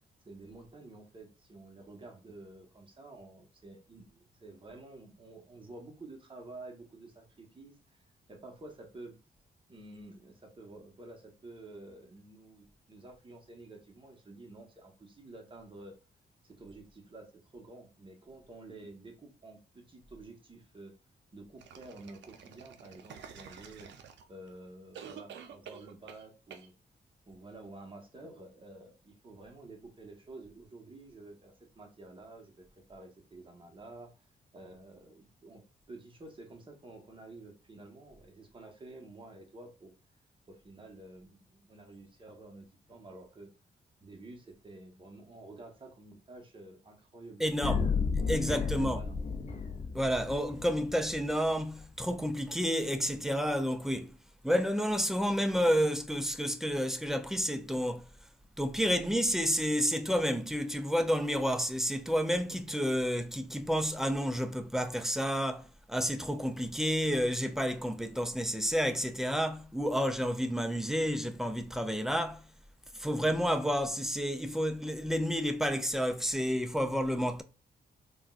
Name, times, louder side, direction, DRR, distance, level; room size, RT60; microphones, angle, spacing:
voice 1, 0.2-8.0 8.3-9.1 9.7-16.0 16.4-20.9 21.3-23.9 24.3-26.7 27.2-34.1 34.5-35.6 35.9-39.9 40.5-43.5 44.0-47.9 48.2-49.2, right 2 dB, 30° right, 1.2 m, -50 dB
sound 1, 21.6-24.5 24.9-26.2 26.5-26.7, right 8 dB, 85° right, 0.5 m, -49 dB
voice 2, 47.4-47.8 48.3-49.0 49.9-54.2 54.4-58.1 58.6-72.5 72.9-77.4, equal, ahead, 0.4 m, -30 dB
sound 2, 47.6-51.6, left 5 dB, 40° left, 0.6 m, -33 dB
3.6 x 2.3 x 2.4 m
cardioid pair, 75°, 18 cm